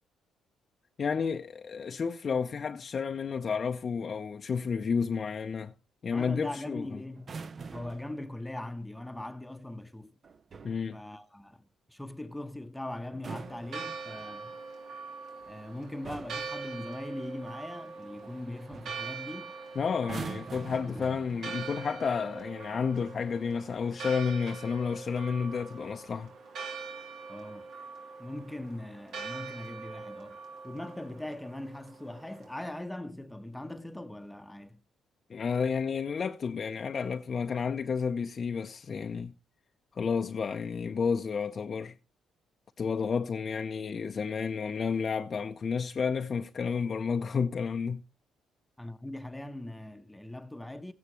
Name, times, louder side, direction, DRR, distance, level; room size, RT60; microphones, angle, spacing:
voice 1, 1.0-5.7 6.0-6.9 10.6-11.0 19.8-26.3 35.3-39.3 39.9-41.9 42.8-48.0, left 6 dB, 50° left, 0.6 m, -31 dB
voice 2, 6.1-7.3 7.7-10.1 10.9-14.6 15.5-19.5 20.8-21.1 27.3-27.7 28.2-34.8 48.8-50.9, left 1 dB, 5° left, 0.9 m, -41 dB
sound 1, 7.2-8.1 10.2-10.9 13.0-14.4 15.4-15.7 16.0-16.5 18.2-18.4 18.7-19.0 20.0-21.6 22.6-22.8, right 5 dB, 45° right, 0.6 m, -43 dB
Church bell, 13.3-32.8, right 4 dB, 75° right, 3.0 m, -43 dB
14.5 x 9.6 x 3.0 m
supercardioid pair, 70°, 0 cm